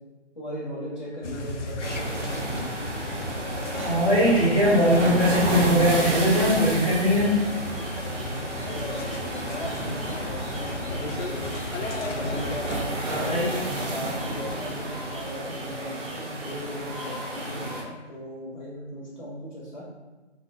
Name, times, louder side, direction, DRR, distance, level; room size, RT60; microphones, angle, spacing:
voice 1, 0.3-2.4 8.0-11.5 12.1-13.3 13.7-19.8, equal, 40° left, -7 dB, 0.7 m, -38 dB
sound 1, 0.9-17.8, left 2 dB, ahead, 0.3 m, -44 dB
sound 2, 1.2-12.8, left 1 dB, 85° left, 0.5 m, -35 dB
sound 3, 1.8-17.8, right 1 dB, 80° right, 0.7 m, -32 dB
voice 2, 3.7-7.4 13.0-13.5, equal, 30° right, -9 dB, 0.7 m, -21 dB
2.7 x 2.1 x 3.5 m, 1.2 s
figure-of-eight pair, 170°, 36 cm